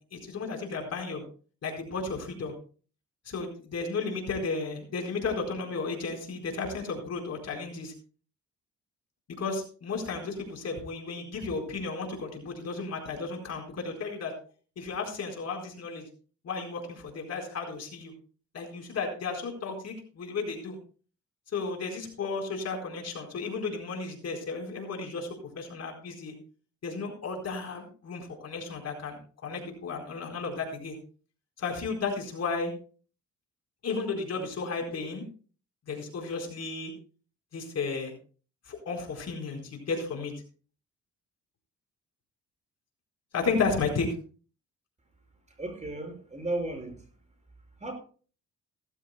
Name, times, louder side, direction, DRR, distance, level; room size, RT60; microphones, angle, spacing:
voice 1, 0.1-1.2 1.6-2.5 3.3-7.9 9.4-14.3 14.8-16.0 16.4-18.1 18.5-20.8 21.5-25.3 25.6-26.3 26.8-31.0 31.6-32.7 33.8-35.2 35.9-36.9 37.5-38.1 38.7-40.3 43.3-44.1, left 4 dB, 55° left, 2 dB, 4.4 m, -33 dB
voice 2, 45.6-47.1 47.8-47.9, right 2 dB, 25° right, 4 dB, 5.3 m, -34 dB
17.0 x 14.5 x 2.2 m, 0.39 s
cardioid pair, 90°, 30 cm